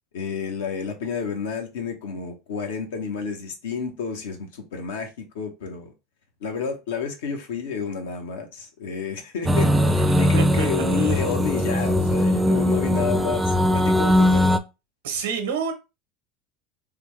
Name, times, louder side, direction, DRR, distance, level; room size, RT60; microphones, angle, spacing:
voice 1, 0.1-5.9 6.4-14.5, left 5 dB, 85° left, 0.9 m, -30 dB
sound 1, 9.5-14.6, left 1 dB, 10° right, 0.4 m, -20 dB
voice 2, 10.4-10.7 11.0-11.2 15.0-15.7, right 6 dB, 85° right, 0.9 m, -28 dB
3.4 x 2.3 x 3.2 m
supercardioid pair, 100°, 0 cm